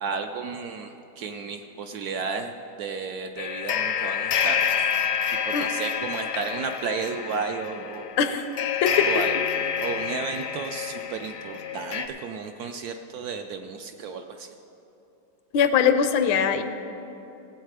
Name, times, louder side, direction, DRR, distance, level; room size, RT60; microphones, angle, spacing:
voice 1, 0.0-4.9 5.4-8.4 9.0-9.4 9.8-14.5, right 5 dB, 75° right, 6 dB, 0.9 m, -33 dB
sound 1, 3.4-12.1, left 7 dB, 65° left, 0.8 m, -28 dB
voice 2, 8.2-8.5 8.8-9.1 15.5-16.6, left 7 dB, 80° left, 9 dB, 1.5 m, -21 dB
17.5 x 8.1 x 4.9 m, 2.9 s
omnidirectional pair, 2.1 m